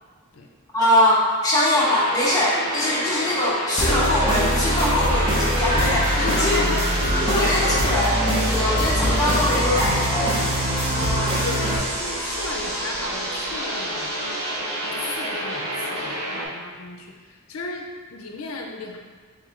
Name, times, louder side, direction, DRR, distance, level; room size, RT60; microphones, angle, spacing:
voice 1, 0.7-6.6 7.2-8.2 8.5-10.4, left 1 dB, 15° left, -8 dB, 0.9 m, -22 dB
sound 1, 1.7-16.5, right 1 dB, 80° right, 1.2 m, -29 dB
sound 2, 3.8-11.8, equal, 25° right, 0.8 m, -23 dB
sound 3, 4.0-14.7, equal, 45° left, 0.9 m, -35 dB
voice 2, 6.2-7.5 10.9-14.2 14.8-19.0, left 2 dB, 70° left, 1 dB, 0.5 m, -34 dB
3.6 x 3.1 x 3.6 m, 1.5 s
head